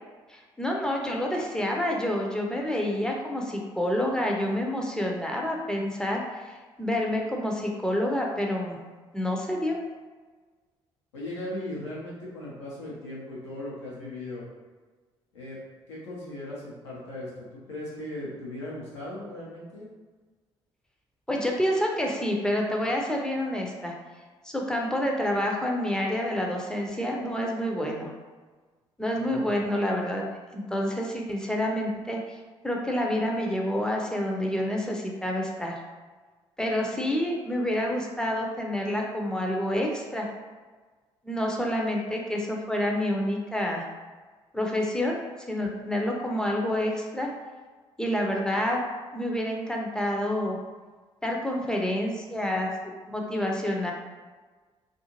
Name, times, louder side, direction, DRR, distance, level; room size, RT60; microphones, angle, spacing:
voice 1, 0.3-8.8 9.1-9.8 21.3-23.9 24.4-28.1 29.0-30.3 30.5-32.4 32.6-35.7 36.6-40.3 41.2-43.9 44.5-45.1 45.5-47.3 48.0-48.8 49.1-50.6 51.2-52.7 53.1-53.9, left 1 dB, 5° left, -1 dB, 0.5 m, -28 dB
voice 2, 11.1-14.4 15.3-15.6 15.9-19.9 29.1-29.5, left 1 dB, 80° left, -6 dB, 0.7 m, -38 dB
2.5 x 2.4 x 2.8 m, 1.4 s
figure-of-eight pair, 45°, 15 cm